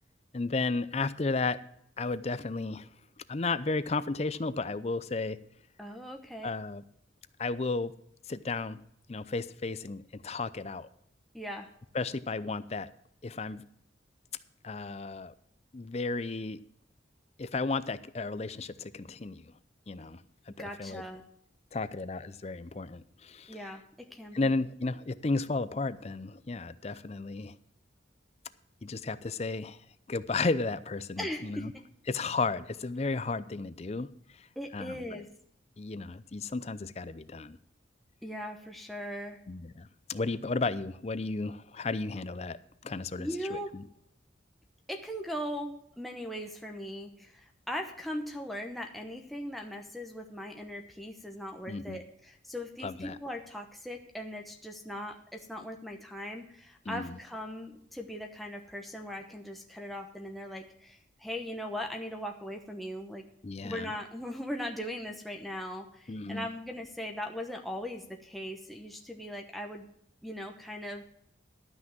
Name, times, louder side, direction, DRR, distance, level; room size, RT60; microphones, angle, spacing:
voice 1, 0.3-1.6 2.0-2.9 3.3-5.4 6.4-6.8 7.4-7.9 8.3-8.8 9.1-10.9 11.9-12.9 13.2-13.6 14.6-15.3 15.7-16.6 17.4-19.5 19.9-20.2 20.5-21.0 21.7-23.6 24.3-27.5 28.8-29.8 30.1-31.7 32.1-34.1 34.4-34.5 34.7-35.2 35.8-37.6 39.5-42.6 42.8-43.8 51.7-52.0 52.8-53.2 56.9-57.2 63.4-64.0 66.1-66.5, left 3 dB, 35° left, 15 dB, 0.5 m, -33 dB
voice 2, 5.8-6.5 11.3-11.7 20.6-21.2 23.5-23.8 24.1-24.5 31.2-31.8 34.6-35.3 38.2-39.4 43.2-43.7 44.9-63.2 63.6-69.9 70.2-71.0, equal, ahead, 2 dB, 0.9 m, -39 dB
12.5 x 6.0 x 7.3 m, 0.71 s
head